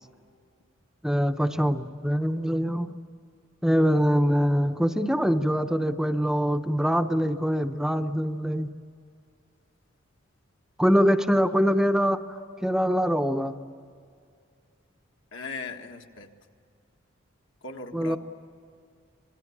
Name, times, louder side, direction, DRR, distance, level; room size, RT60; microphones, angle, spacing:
voice 1, 1.0-2.9 3.6-8.7 10.8-12.2 12.6-13.5 17.9-18.2, equal, 5° right, 8 dB, 0.8 m, -23 dB
voice 2, 15.3-16.3 17.6-18.2, left 3 dB, 65° left, 4 dB, 1.6 m, -38 dB
26.0 x 20.0 x 8.6 m, 2.2 s
head